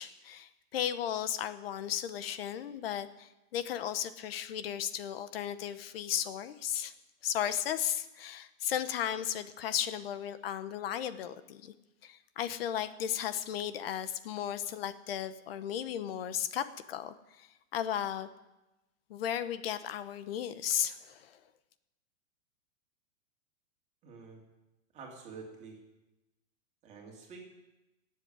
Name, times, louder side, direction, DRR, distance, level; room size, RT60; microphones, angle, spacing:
voice 1, 0.0-6.9 7.2-11.7 12.0-18.3 19.1-21.4, left 10 dB, 45° left, 13 dB, 1.0 m, -35 dB
voice 2, 24.0-24.4 24.9-25.8 26.8-27.4, right 4 dB, 15° right, -1 dB, 2.8 m, -48 dB
17.0 x 7.6 x 9.6 m, 1.0 s
supercardioid pair, 170°, 40 cm